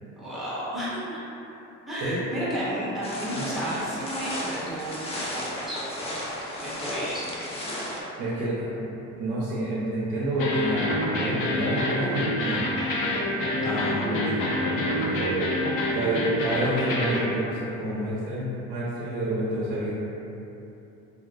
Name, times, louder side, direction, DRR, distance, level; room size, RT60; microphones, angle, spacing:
voice 1, 0.2-1.2 1.9-5.8 6.6-7.4 13.6-14.1, equal, ahead, -11 dB, 0.8 m, -32 dB
sound 1, 3.0-8.0, left 1 dB, 20° left, 0.4 m, -34 dB
voice 2, 8.2-8.9 9.2-12.8 13.4-15.5 15.9-20.0, right 1 dB, 90° right, -7 dB, 0.6 m, -29 dB
sound 2, 10.4-17.3, left 1 dB, 85° left, 0.5 m, -27 dB
3.5 x 2.3 x 2.3 m, 2.9 s
cardioid pair, 130°, 31 cm